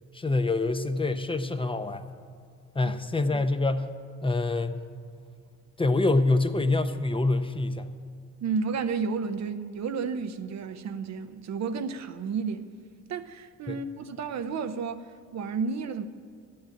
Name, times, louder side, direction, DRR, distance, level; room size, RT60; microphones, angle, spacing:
voice 1, 0.1-2.0 2.7-3.9 4.2-4.8 5.8-7.9 13.7-13.8, left 2 dB, 15° left, 0.7 m, -26 dB
voice 2, 8.4-12.7 13.1-16.0, right 5 dB, 65° right, 0.8 m, -32 dB
11.5 x 8.7 x 9.1 m
cardioid pair, 90°, 30 cm